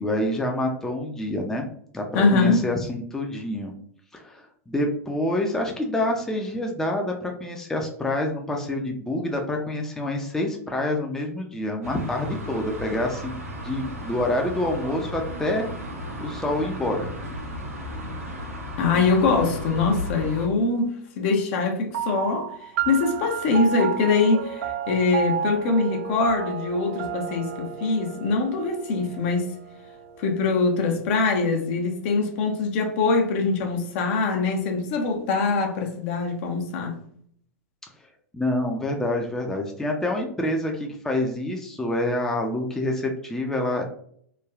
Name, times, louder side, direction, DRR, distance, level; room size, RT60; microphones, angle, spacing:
voice 1, 0.0-1.7 1.9-2.0 2.3-3.7 4.1-15.6 16.2-17.1 38.3-43.8, left 1 dB, 5° left, 0.4 m, -27 dB
voice 2, 2.1-2.6 18.8-22.5 22.9-29.5 30.2-37.0, left 4 dB, 55° left, 0.6 m, -23 dB
sound 1, 11.8-20.5, equal, 85° right, 1.1 m, -34 dB
sound 2, 21.9-30.8, right 8 dB, 65° right, 0.4 m, -32 dB
3.2 x 2.2 x 2.3 m
hypercardioid pair, 100°, 8 cm